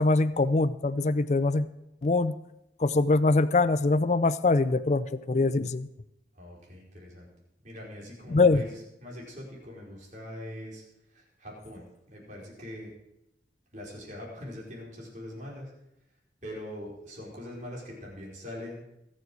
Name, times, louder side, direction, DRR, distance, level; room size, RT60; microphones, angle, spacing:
voice 1, 0.0-1.7 2.0-2.4 2.8-5.9 8.3-8.6, left 3 dB, 40° left, 13 dB, 0.4 m, -23 dB
voice 2, 6.3-7.3 7.6-10.8 11.1-12.9 13.7-15.7 16.4-18.8, left 1 dB, 45° right, -3 dB, 4.6 m, -42 dB
22.0 x 7.5 x 4.7 m, 0.86 s
head